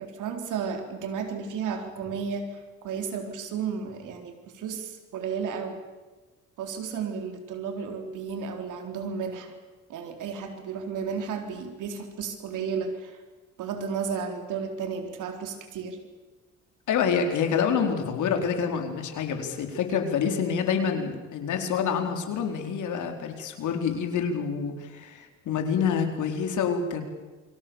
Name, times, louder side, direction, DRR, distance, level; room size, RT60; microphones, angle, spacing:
voice 1, 0.0-5.8 6.6-9.5 9.9-13.2 13.6-16.0, right 6 dB, 85° right, 5 dB, 3.9 m, -33 dB
voice 2, 16.9-27.0, left 6 dB, 75° left, 4 dB, 4.3 m, -27 dB
28.5 x 23.5 x 7.2 m, 1.2 s
cardioid pair, 90°, 30 cm